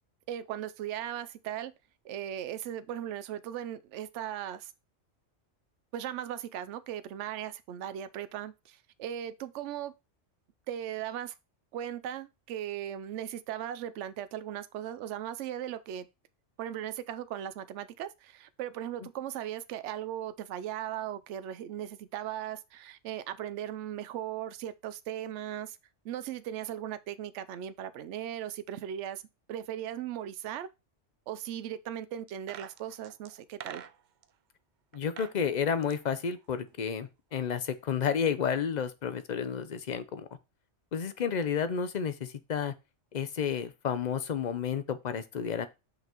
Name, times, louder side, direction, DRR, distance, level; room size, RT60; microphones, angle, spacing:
voice 1, 0.3-1.7 2.0-4.7 5.9-9.9 10.7-11.3 11.7-16.1 16.6-25.8 26.0-29.2 29.5-30.7 31.3-33.8, right 11 dB, 80° right, 0.9 m, -38 dB
sound 1, 32.3-34.3 34.9-35.4 35.7-37.0 37.3-37.4, right 9 dB, 60° right, 0.5 m, -47 dB
voice 2, 34.9-40.3 40.9-42.7 43.1-45.7, left 7 dB, 45° left, 0.6 m, -31 dB
5.8 x 5.6 x 2.9 m
omnidirectional pair, 1.2 m